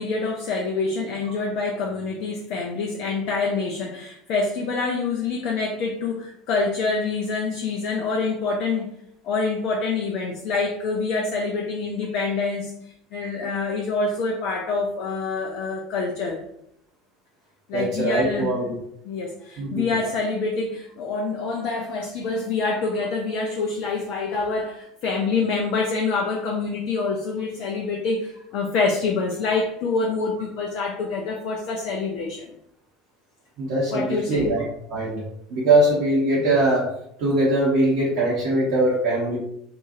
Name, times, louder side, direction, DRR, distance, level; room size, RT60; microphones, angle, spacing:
voice 1, 0.0-8.9 9.2-12.7 13.1-16.4 17.7-18.5 19.1-32.5 33.9-34.5, left 4 dB, 50° left, 0 dB, 0.4 m, -26 dB
voice 2, 17.7-18.7 19.6-19.8 33.6-34.6 34.9-35.2 35.5-36.8 37.2-39.4, right 1 dB, 55° right, -7 dB, 0.9 m, -21 dB
2.7 x 2.4 x 2.5 m, 0.74 s
figure-of-eight pair, 70°, 0 cm